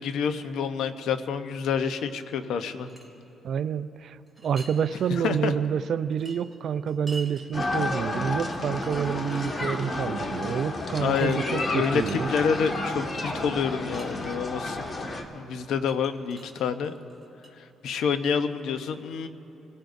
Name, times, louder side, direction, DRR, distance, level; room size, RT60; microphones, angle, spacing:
voice 1, 0.0-2.9 5.1-5.5 11.0-14.8 15.3-16.9 17.6-19.3, left 6 dB, 80° left, 9 dB, 0.8 m, -28 dB
sound 1, 2.6-3.1 4.3-4.8 5.2-5.3 6.1-7.5 8.2-8.3 8.5-9.7 11.1-12.7 13.6-14.7 15.9-17.5, right 2 dB, 5° right, 2.5 m, -47 dB
voice 2, 3.4-4.2 4.4-12.3, right 7 dB, 65° right, 14 dB, 0.5 m, -28 dB
sound 2, 7.5-15.2, left 2 dB, 35° left, 1.7 m, -31 dB
Piano, 9.1-15.8, left 3 dB, 55° left, 1.5 m, -49 dB
27.0 x 16.5 x 2.6 m, 3.0 s
cardioid pair, 90°, 0 cm